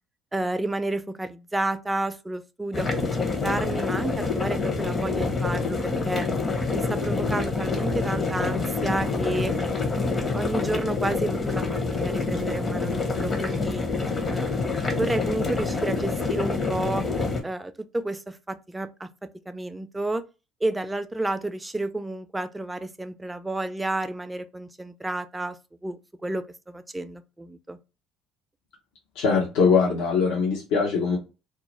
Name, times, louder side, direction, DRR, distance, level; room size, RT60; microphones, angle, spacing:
voice 1, 0.3-6.3 6.7-9.5 10.1-11.6 12.0-13.9 14.3-14.6 14.9-17.1 17.4-20.2 20.6-25.6 25.8-27.8, right 2 dB, 15° right, 0.4 m, -31 dB
sound 1, 2.7-17.4, left 3 dB, 35° left, 0.7 m, -27 dB
voice 2, 29.2-31.2, left 5 dB, 70° left, 0.7 m, -22 dB
2.3 x 2.0 x 3.0 m
hypercardioid pair, 60°, 0 cm